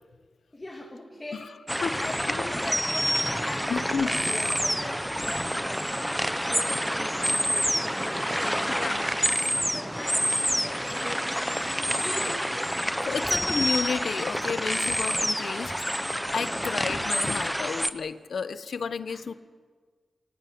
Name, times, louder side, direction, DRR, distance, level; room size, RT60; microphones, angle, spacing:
voice 1, 0.5-8.9 9.2-9.3 9.7-13.3 16.3-16.7 19.1-19.3, left 1 dB, 25° left, 1 dB, 2.9 m, -41 dB
sound 1, 1.7-17.9, equal, ahead, 1.1 m, -28 dB
voice 2, 3.7-4.1 8.8-9.0 13.1-15.8 16.3-19.3, left 5 dB, 75° left, 13 dB, 1.1 m, -31 dB
22.0 x 18.5 x 9.5 m, 1.5 s
wide cardioid pair, 90°, 0 cm